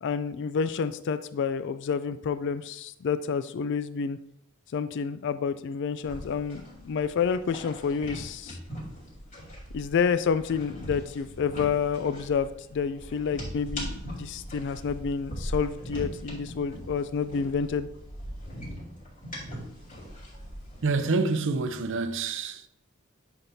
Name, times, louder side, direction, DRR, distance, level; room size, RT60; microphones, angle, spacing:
voice 1, 0.0-4.2 4.7-8.6 9.7-17.9, left 6 dB, 60° left, 0.4 m, -29 dB
sound 1, 6.0-20.9, equal, 40° left, 2.8 m, -40 dB
voice 2, 20.8-22.7, right 3 dB, 65° right, 0.6 m, -27 dB
8.8 x 5.9 x 2.7 m
head